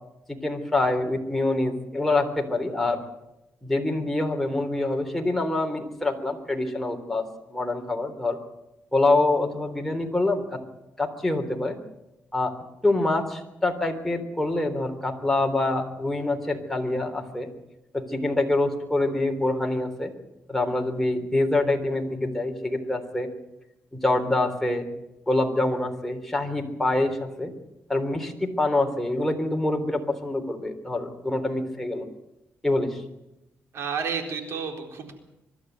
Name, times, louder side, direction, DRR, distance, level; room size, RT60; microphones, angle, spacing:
voice 1, 0.3-3.0 3.6-7.2 7.5-8.4 8.9-10.6 11.0-11.8 12.3-12.5 12.8-17.5 17.9-20.1 20.5-23.3 23.9-24.8 25.3-27.5 27.9-32.1 32.6-33.0, left 2 dB, 5° left, 3 dB, 3.6 m, -25 dB
voice 2, 33.7-35.1, right 6 dB, 70° right, 4 dB, 4.1 m, -31 dB
24.0 x 12.5 x 9.4 m, 0.92 s
cardioid pair, 100°, 5 cm